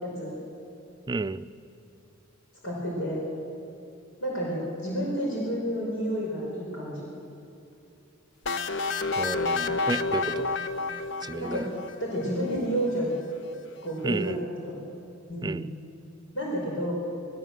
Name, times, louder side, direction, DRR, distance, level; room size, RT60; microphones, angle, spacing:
voice 1, 0.0-0.3 2.6-3.2 4.2-7.1 11.4-11.7 12.0-13.1 13.8-14.8 15.3-15.6 16.3-16.9, equal, 90° left, -4 dB, 5.2 m, -30 dB
voice 2, 1.1-1.5 9.2-10.6 11.2-11.6 12.6-12.7 14.0-14.4 15.4-15.7, right 3 dB, 20° right, 12 dB, 0.5 m, -32 dB
sound 1, 8.5-12.2, left 4 dB, 65° left, 0.9 m, -29 dB
20.5 x 18.0 x 7.8 m, 2.6 s
head